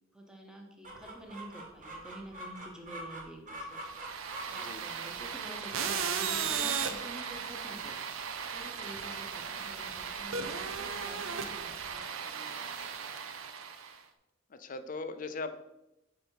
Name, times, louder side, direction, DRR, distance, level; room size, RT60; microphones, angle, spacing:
voice 1, 0.1-8.0 8.5-12.6 13.0-13.1, equal, 5° right, 1 dB, 0.9 m, -49 dB
Chicken rooster, 0.8-11.9, right 1 dB, 40° right, 1.4 m, -48 dB
sound 1, 3.8-14.0, right 6 dB, 75° right, 0.6 m, -36 dB
voice 2, 14.5-15.6, left 3 dB, 40° left, 10 dB, 0.5 m, -39 dB
5.1 x 5.0 x 4.5 m, 0.91 s
head